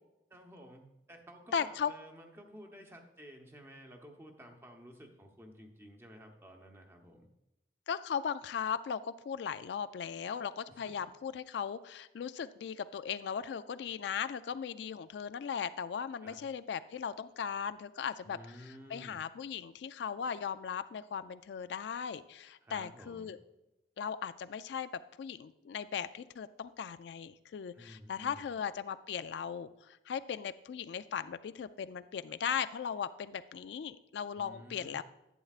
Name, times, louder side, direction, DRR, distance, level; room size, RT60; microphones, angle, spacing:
voice 1, 0.3-7.3 10.7-10.9 16.2-16.4 18.2-19.2 22.6-23.4 27.7-28.5 34.4-35.0, equal, 15° right, 2 dB, 0.9 m, -53 dB
voice 2, 1.5-1.9 7.9-23.4 24.0-24.9 25.2-35.0, left 7 dB, 75° left, 13 dB, 0.3 m, -38 dB
11.0 x 8.4 x 2.4 m, 0.93 s
head